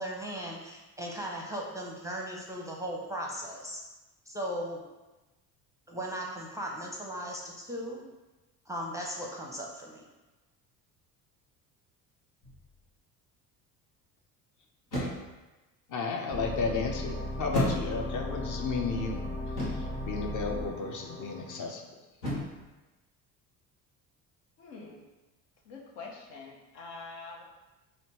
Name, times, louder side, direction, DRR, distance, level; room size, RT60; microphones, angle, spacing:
voice 1, 0.0-3.8 4.3-4.8 5.9-8.0 8.7-10.0, equal, 5° right, -2 dB, 0.5 m, -37 dB
sound 1, 12.4-12.8 14.9-15.4 17.5-18.2 19.6-20.0 22.2-22.7, equal, 90° left, 1.3 m, -33 dB
voice 2, 15.9-19.2 19.6-21.8, left 4 dB, 40° left, 3 dB, 0.7 m, -33 dB
sound 2, 16.3-21.6, left 1 dB, 15° left, 1.0 m, -36 dB
voice 3, 24.6-25.0 25.7-27.4, left 3 dB, 70° left, 1 dB, 0.8 m, -45 dB
4.2 x 2.6 x 3.0 m, 1.1 s
hypercardioid pair, 60°, 48 cm